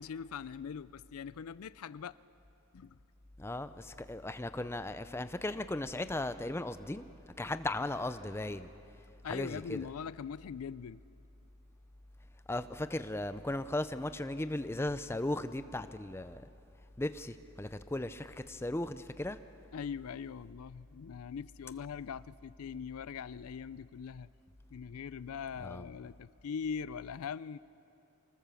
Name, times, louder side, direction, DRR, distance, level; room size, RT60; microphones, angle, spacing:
voice 1, 0.0-2.2 2.7-2.9 9.2-11.0 19.7-24.3 24.7-27.6, left 6 dB, 75° left, 18 dB, 0.4 m, -41 dB
voice 2, 3.4-7.1 7.4-8.7 9.3-9.9 12.5-16.4 17.0-19.4 25.6-25.9, left 1 dB, 10° left, 11 dB, 0.5 m, -37 dB
25.0 x 19.5 x 7.0 m, 2.8 s
head